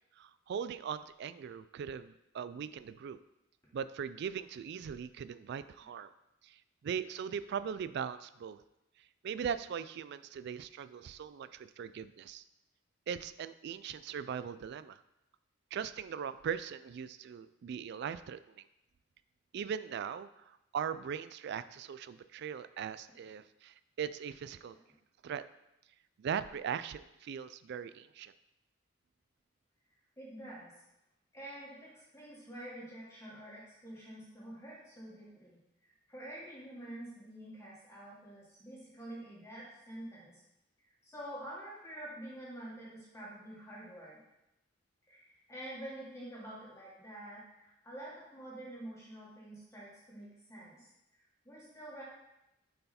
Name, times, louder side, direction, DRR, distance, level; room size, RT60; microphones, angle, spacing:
voice 1, 0.2-3.2 3.7-6.1 6.4-6.6 6.8-8.6 9.2-12.4 13.1-15.0 15.7-18.6 19.5-24.8 25.2-25.4 26.2-28.3, right 7 dB, 55° right, 14 dB, 0.3 m, -40 dB
voice 2, 30.2-30.7 31.3-35.6 36.1-40.4 41.0-44.2 45.1-52.0, right 1 dB, 15° left, -7 dB, 1.6 m, -47 dB
6.6 x 4.5 x 4.2 m, 0.88 s
head